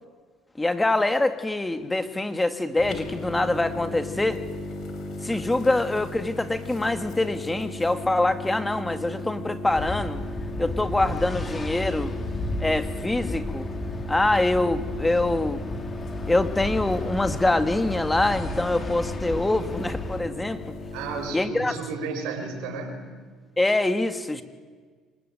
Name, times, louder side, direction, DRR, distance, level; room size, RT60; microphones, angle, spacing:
voice 1, 0.6-4.4 5.2-10.2 10.6-12.1 12.6-13.7 14.1-15.6 16.3-20.6 21.3-21.7 23.6-24.4, left 2 dB, 15° left, 9 dB, 2.2 m, -24 dB
sound 1, 2.8-21.3, left 2 dB, 60° left, 6.3 m, -36 dB
sound 2, 9.7-20.2, left 1 dB, 30° left, 4.6 m, -33 dB
voice 2, 20.9-23.1, right 4 dB, 80° right, 4 dB, 6.7 m, -33 dB
26.5 x 20.5 x 9.3 m, 1.5 s
supercardioid pair, 75°, 0 cm